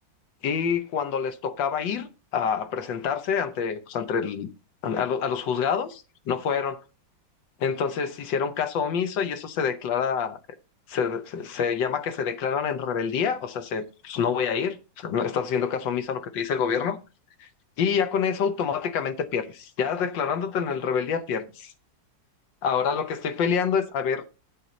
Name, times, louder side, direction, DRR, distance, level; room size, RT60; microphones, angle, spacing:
voice 1, 0.4-4.5 4.8-6.8 7.6-10.4 10.9-17.0 17.4-17.5 17.8-21.7 22.6-24.2, left 6 dB, 80° left, 1.6 m, -27 dB
9.6 x 7.7 x 4.0 m
omnidirectional pair, 2.0 m